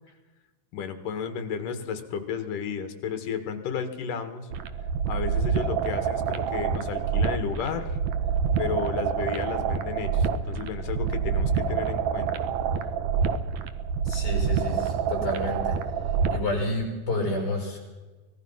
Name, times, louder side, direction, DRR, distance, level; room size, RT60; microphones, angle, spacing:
voice 1, 0.7-4.5 5.1-8.0 8.6-12.3, left 7 dB, 60° left, 9 dB, 3.1 m, -33 dB
sound 1, 4.5-16.5, right 6 dB, 70° right, 1.7 m, -27 dB
voice 2, 14.1-15.8 16.3-17.8, left 1 dB, 25° left, 0 dB, 7.1 m, -30 dB
24.5 x 19.0 x 5.8 m, 1.2 s
omnidirectional pair, 4.6 m